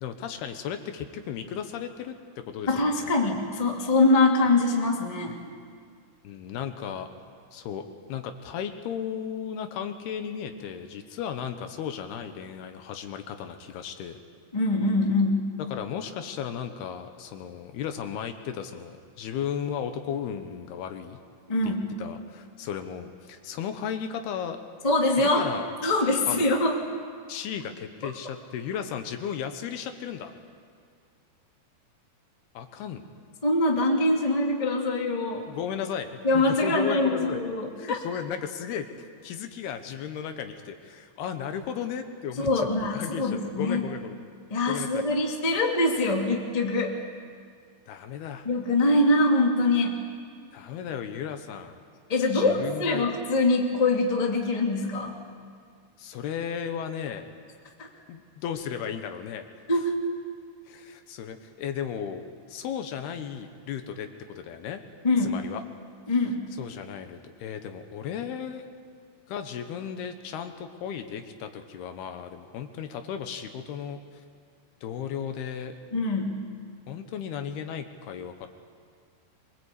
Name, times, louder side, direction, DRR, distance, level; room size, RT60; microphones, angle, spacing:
voice 1, 0.0-2.1 2.5-3.1 6.2-7.1 7.5-7.8 8.1-14.2 15.7-21.2 21.6-24.6 25.2-25.7 26.3-26.5 27.3-30.3 32.5-33.0 35.5-37.4 37.8-38.9 39.2-42.7 42.9-44.2 44.7-45.0 47.9-48.5 50.5-51.8 52.3-53.1 56.0-57.3 58.1-59.5 60.7-64.8 65.2-65.6 66.6-68.7 69.3-74.2 74.8-75.8 76.9-78.5, left 8 dB, 75° left, 7 dB, 2.9 m, -35 dB
voice 2, 2.7-5.4 14.5-15.5 21.5-21.9 24.8-25.5 25.8-26.8 33.4-35.5 36.2-38.0 42.4-43.8 44.5-46.9 48.4-50.0 52.1-55.1 57.8-57.9 59.7-59.9 65.0-65.4 66.1-66.4 75.9-76.4, left 2 dB, 15° left, 1 dB, 1.2 m, -24 dB
24.5 x 22.5 x 8.3 m, 2.1 s
omnidirectional pair, 4.9 m